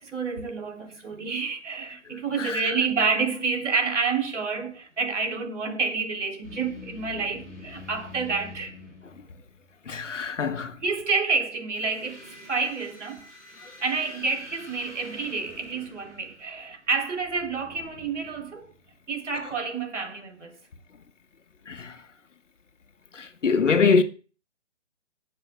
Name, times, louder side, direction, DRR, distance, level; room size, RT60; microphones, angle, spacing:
voice 1, 0.0-8.8 10.8-13.3 13.8-18.7 19.1-20.6, right 4 dB, 80° right, 3.4 m, -29 dB
sound 1, 6.4-9.7 11.7-19.0, left 3 dB, ahead, 0.5 m, -47 dB
voice 2, 9.9-10.8 21.7-22.0 23.1-24.0, left 5 dB, 90° left, 1.3 m, -23 dB
18.0 x 7.5 x 2.2 m
hypercardioid pair, 160°, 36 cm